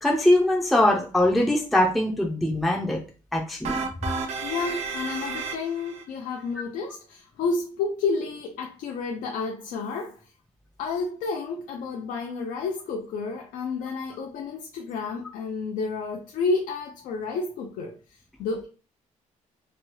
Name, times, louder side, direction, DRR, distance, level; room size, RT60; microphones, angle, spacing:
voice 1, 0.0-3.0 3.3-3.8, left 1 dB, ahead, 0.4 m, -22 dB
sound 1, 3.6-6.0, right 5 dB, 55° right, 0.5 m, -32 dB
voice 2, 4.4-10.2 10.8-18.7, left 4 dB, 85° left, 0.5 m, -30 dB
3.0 x 2.2 x 3.1 m
cardioid pair, 165°, 13 cm